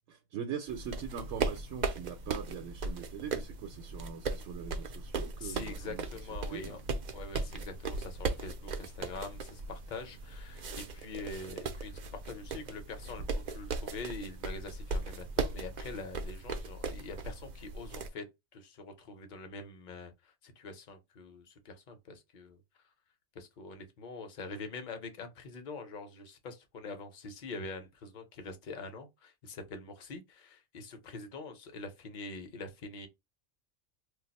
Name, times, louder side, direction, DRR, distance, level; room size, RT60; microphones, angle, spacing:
voice 1, 0.1-6.0 6.5-6.8, right 7 dB, 80° right, 0.9 m, -41 dB
sound 1, 0.7-18.1, right 4 dB, 60° right, 0.5 m, -38 dB
voice 2, 5.4-6.8 7.1-18.3 18.5-22.6 23.3-33.1, left 3 dB, 50° left, 0.7 m, -44 dB
2.4 x 2.3 x 4.0 m
omnidirectional pair, 1.2 m